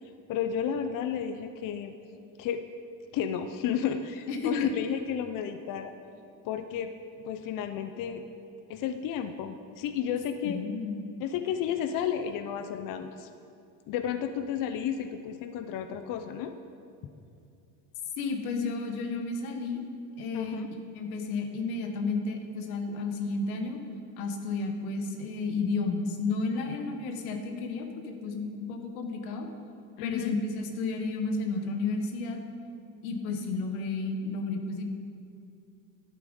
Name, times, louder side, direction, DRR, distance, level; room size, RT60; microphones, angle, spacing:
voice 1, 0.3-1.9 2.4-2.6 3.1-5.9 6.4-6.9 7.2-8.2 8.7-10.6 11.2-13.3 13.9-16.5 20.3-20.7 26.7-26.8 30.0-30.3, left 8 dB, 50° left, 8 dB, 0.6 m, -32 dB
voice 2, 4.3-4.7 10.4-11.0 18.2-19.8 20.2-20.6 20.9-23.8 24.2-29.5 30.0-32.4 33.0-34.8, left 3 dB, 90° left, 4 dB, 1.5 m, -32 dB
11.5 x 8.7 x 5.4 m, 2.5 s
cardioid pair, 125°, 42 cm